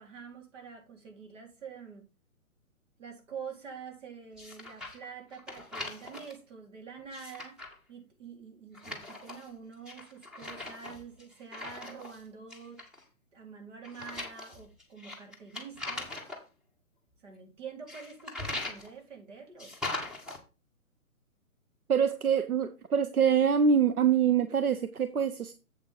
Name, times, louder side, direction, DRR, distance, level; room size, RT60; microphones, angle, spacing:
voice 1, 0.0-2.1 3.0-7.6 7.9-12.8 13.3-16.1 17.2-19.8, right 6 dB, 55° right, 4.0 m, -46 dB
sound 1, 4.4-5.0 5.3-6.3 7.0-7.7 8.7-9.5 9.8-12.2 12.5-13.0 13.8-16.4 17.9-18.9 19.6-20.4, left 2 dB, ahead, 1.3 m, -40 dB
voice 2, 21.9-25.5, right 7 dB, 85° right, 0.9 m, -25 dB
8.0 x 7.6 x 3.7 m
figure-of-eight pair, 135°, 42 cm